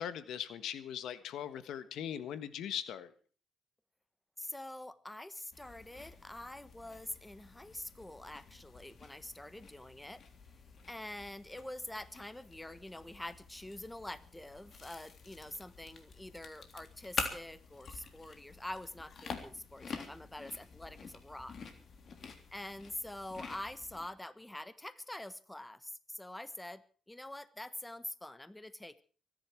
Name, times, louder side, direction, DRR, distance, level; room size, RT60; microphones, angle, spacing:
voice 1, 0.0-3.1, left 9 dB, 80° left, 13 dB, 1.4 m, -40 dB
voice 2, 4.4-10.2 10.9-21.6 22.5-26.8 27.1-29.0, left 1 dB, 10° left, 14 dB, 1.3 m, -45 dB
sound 1, 5.5-24.1, left 5 dB, 50° left, 3.4 m, -47 dB
24.0 x 11.0 x 4.7 m, 0.41 s
cardioid pair, 90°, 0 cm